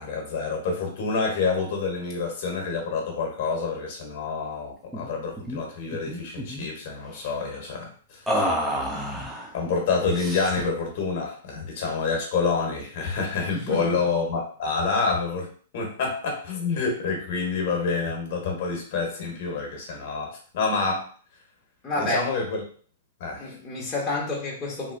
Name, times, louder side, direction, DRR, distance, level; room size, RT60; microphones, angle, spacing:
voice 1, 0.0-8.7 9.5-15.5 15.7-21.1 21.9-22.6 23.2-23.5, left 4 dB, 55° left, 0 dB, 1.2 m, -28 dB
sound 1, 4.9-5.1 5.4-5.6 5.9-6.7 8.3-9.5 10.1-10.8, equal, 5° right, 0.6 m, -29 dB
voice 2, 13.5-14.0 21.8-22.3 23.4-24.9, left 1 dB, 20° left, -4 dB, 1.0 m, -29 dB
3.0 x 2.9 x 2.6 m, 0.43 s
hypercardioid pair, 120°, 0 cm